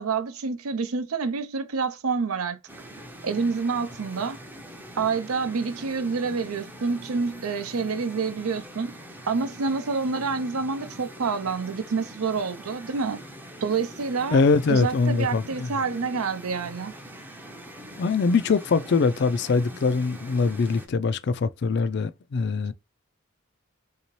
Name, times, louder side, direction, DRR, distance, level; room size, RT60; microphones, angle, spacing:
voice 1, 0.0-2.6 3.2-4.4 5.0-8.9 9.3-13.2 13.6-14.4 14.7-16.9, right 4 dB, 85° right, 0.6 m, -27 dB
sound 1, 2.7-20.9, equal, 10° right, 0.5 m, -43 dB
voice 2, 14.3-15.7 18.0-22.7, left 4 dB, 50° left, 0.4 m, -23 dB
3.7 x 2.7 x 3.0 m
head